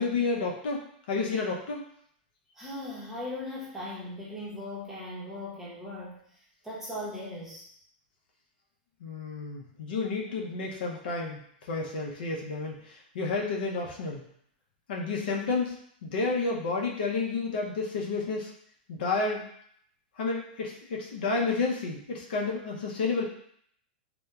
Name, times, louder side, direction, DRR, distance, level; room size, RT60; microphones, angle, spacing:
voice 1, 0.0-1.9 9.0-11.4 11.7-14.2 14.9-15.7 16.0-18.5 18.9-19.5 20.2-23.2, left 4 dB, 75° left, -2 dB, 0.6 m, -30 dB
voice 2, 2.6-6.2 6.6-7.6, left 1 dB, 5° right, -7 dB, 0.7 m, -38 dB
2.7 x 2.1 x 2.3 m, 0.66 s
supercardioid pair, 145°, 5 cm